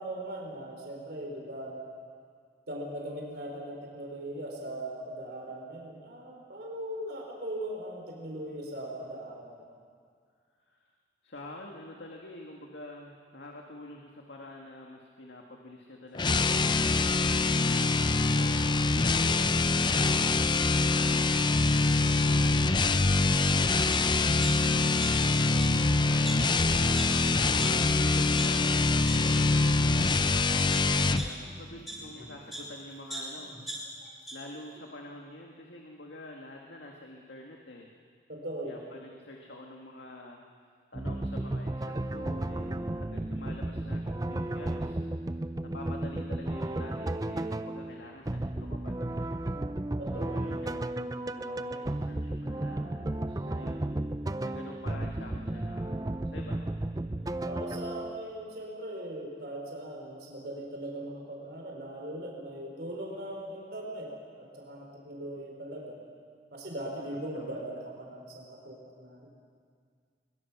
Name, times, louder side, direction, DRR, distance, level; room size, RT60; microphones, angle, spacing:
voice 1, 0.0-1.8 2.7-9.6 26.7-27.0 38.3-38.8 50.0-50.4 57.5-66.0 66.5-69.3, right 1 dB, 65° right, -1 dB, 4.3 m, -39 dB
voice 2, 11.2-16.6 16.9-19.9 20.7-21.6 22.3-26.3 27.6-33.9 34.3-37.9 38.6-40.4 40.9-45.0 45.6-49.2 50.1-53.8 54.4-56.7 67.0-67.6, left 1 dB, 85° left, 0 dB, 1.8 m, -47 dB
sound 1, 16.1-31.3, left 3 dB, 25° left, 0.5 m, -24 dB
sound 2, 23.9-24.0 24.4-25.3 25.6-25.7 26.2-26.3 27.0-27.1 27.6-27.7 28.2-28.4 29.1-29.2 29.8-30.1 30.7-32.7 33.1-34.3 34.7-34.8, right 1 dB, ahead, 4.9 m, -40 dB
sound 3, 40.9-58.3, right 1 dB, 20° right, 0.5 m, -34 dB
22.5 x 21.5 x 6.1 m, 2.1 s
head